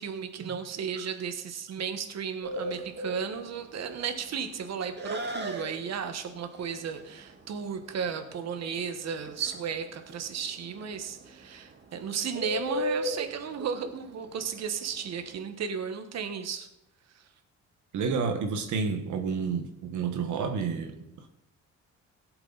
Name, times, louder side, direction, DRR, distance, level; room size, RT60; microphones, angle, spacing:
voice 1, 0.0-16.7 17.1-17.2, right 7 dB, 60° right, 7 dB, 1.5 m, -34 dB
Bird, 2.4-15.4, equal, 35° right, 1.9 m, -37 dB
voice 2, 17.9-21.3, right 5 dB, 75° right, 5 dB, 1.4 m, -30 dB
17.5 x 7.9 x 4.1 m, 0.85 s
cardioid pair, 90°, 30 cm